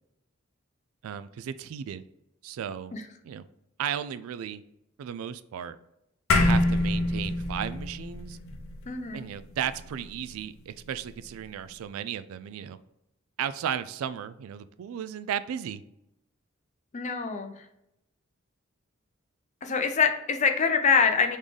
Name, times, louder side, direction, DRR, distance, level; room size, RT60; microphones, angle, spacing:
voice 1, 1.0-2.0 2.4-2.9 3.2-3.4 3.8-4.6 5.0-5.8 6.4-8.4 9.1-12.8 13.4-15.8, right 9 dB, 80° right, 14 dB, 0.3 m, -35 dB
sound 1, 6.3-10.9, left 1 dB, 80° left, 0.6 m, -27 dB
voice 2, 8.9-9.3 16.9-17.5 19.6-21.4, left 5 dB, 35° left, 6 dB, 0.5 m, -24 dB
3.9 x 3.6 x 3.2 m, 0.85 s
head